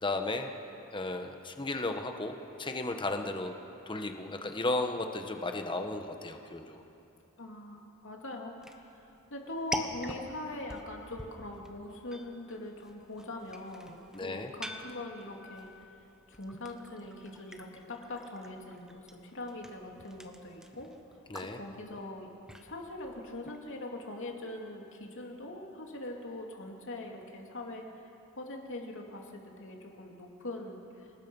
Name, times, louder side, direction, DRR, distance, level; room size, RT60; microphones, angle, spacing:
voice 1, 0.0-0.5 0.9-3.5 3.9-6.8 14.1-14.5 21.3-21.6, left 2 dB, 20° left, 5 dB, 1.2 m, -34 dB
voice 2, 7.4-15.7 16.3-20.9 21.4-22.3 22.6-31.1, left 2 dB, 60° left, 1 dB, 2.7 m, -42 dB
sound 1, 8.6-23.7, equal, 5° right, 1.1 m, -46 dB
27.5 x 19.0 x 5.5 m, 2.8 s
head